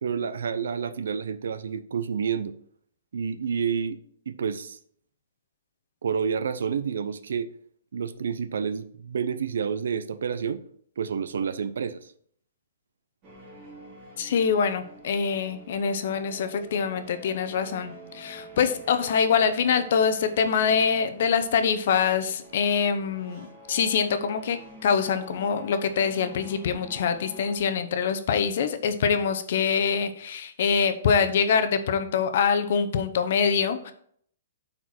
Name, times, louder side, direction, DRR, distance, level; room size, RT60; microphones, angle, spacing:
voice 1, 0.0-2.5 3.1-4.0 4.3-4.8 6.0-7.5 7.9-10.6 11.0-12.0, right 6 dB, 80° right, 14 dB, 0.6 m, -29 dB
sound 1, 13.2-27.6, right 1 dB, 30° right, 3.2 m, -47 dB
voice 2, 14.2-33.9, left 6 dB, 50° left, 9 dB, 0.8 m, -24 dB
8.6 x 4.5 x 4.3 m, 0.62 s
hypercardioid pair, 170°, 0 cm